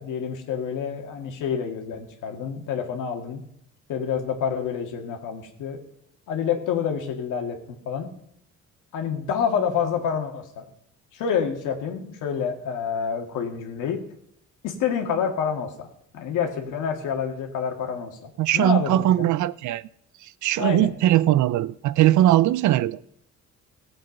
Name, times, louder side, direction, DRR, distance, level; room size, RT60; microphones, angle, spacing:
voice 1, 0.0-3.4 3.9-5.8 6.3-8.1 8.9-10.6 11.1-14.0 14.6-15.9 16.1-19.3 20.6-21.0, left 7 dB, 90° left, 2.0 m, -28 dB
voice 2, 18.4-19.8 20.2-23.0, right 13 dB, 75° right, 0.5 m, -20 dB
17.0 x 7.9 x 5.3 m
cardioid pair, 90°, 30 cm